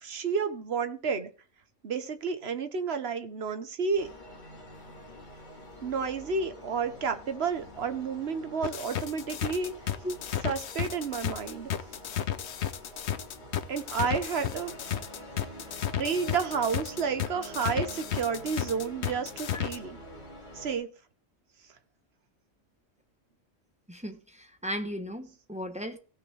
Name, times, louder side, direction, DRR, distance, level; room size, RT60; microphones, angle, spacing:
voice 1, 0.0-1.3 1.8-4.1 5.8-9.7 10.4-11.7 13.7-14.8 16.0-20.0 20.5-20.9, right 5 dB, 55° right, 1.2 m, -31 dB
sound 1, 4.0-20.8, equal, 40° left, 2.4 m, -47 dB
sound 2, 8.6-19.8, left 10 dB, 65° left, 1.0 m, -32 dB
voice 2, 23.9-26.0, equal, 5° right, 0.9 m, -36 dB
16.5 x 6.3 x 3.4 m
omnidirectional pair, 1.3 m